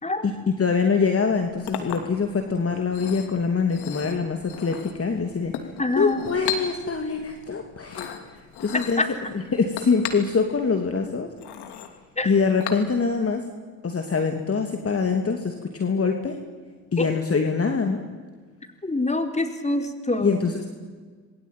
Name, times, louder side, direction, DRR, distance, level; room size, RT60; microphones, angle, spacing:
voice 1, 0.2-5.5 6.0-8.1 8.6-9.0 9.3-11.3 12.2-13.4 13.8-16.4 16.9-18.0 20.2-20.7, left 5 dB, 35° left, 4 dB, 2.9 m, -24 dB
Chink clink, 1.2-13.3, left 8 dB, 70° left, 2.9 m, -37 dB
voice 2, 5.8-6.2 9.0-9.1 12.2-12.3 17.0-17.1 18.8-20.5, left 2 dB, 15° left, 6 dB, 4.3 m, -25 dB
27.5 x 21.5 x 9.2 m, 1.5 s
hypercardioid pair, 50°, 41 cm